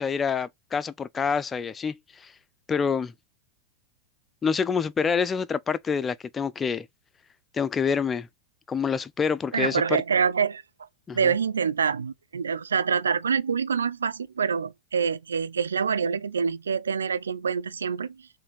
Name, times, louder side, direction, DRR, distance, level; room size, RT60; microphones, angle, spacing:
voice 1, 0.0-2.3 2.7-3.1 4.4-6.9 7.5-8.3 8.7-9.8 11.1-11.3, left 6 dB, 20° left, 0.3 m, -27 dB
voice 2, 9.5-10.6 11.1-18.2, right 6 dB, 70° right, 0.3 m, -26 dB
3.3 x 2.6 x 3.7 m
figure-of-eight pair, 90°, 0 cm